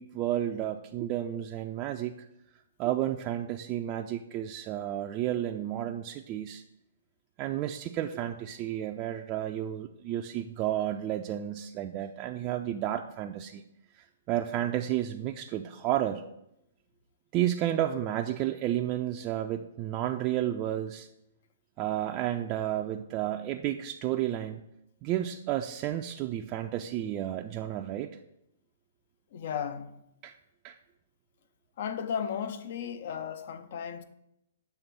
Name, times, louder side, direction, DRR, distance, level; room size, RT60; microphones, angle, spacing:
voice 1, 0.0-2.1 2.8-6.6 7.4-13.6 14.0-16.2 17.3-21.1 21.8-24.6 25.0-28.1 30.2-30.3 30.6-30.8, right 12 dB, 35° right, 0.4 m, -31 dB
voice 2, 29.3-30.0 31.8-34.0, left 7 dB, 55° left, 0.6 m, -35 dB
6.8 x 3.5 x 6.0 m
hypercardioid pair, 120°, 0 cm